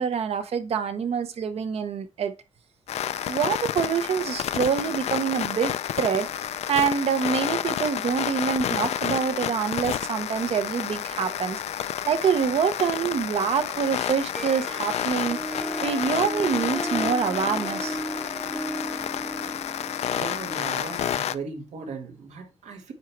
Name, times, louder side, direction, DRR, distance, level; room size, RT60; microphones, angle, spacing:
voice 1, 0.0-2.3 3.2-6.3 6.7-11.6 12.1-15.6 15.8-18.0, right 7 dB, 60° right, 0.9 m, -26 dB
sound 1, 2.9-21.4, left 10 dB, 65° left, 0.4 m, -30 dB
Harp, 14.3-21.2, right 1 dB, ahead, 0.5 m, -35 dB
voice 2, 20.1-22.9, right 4 dB, 85° right, 1.8 m, -37 dB
9.0 x 3.0 x 4.6 m
cardioid pair, 130°, 12 cm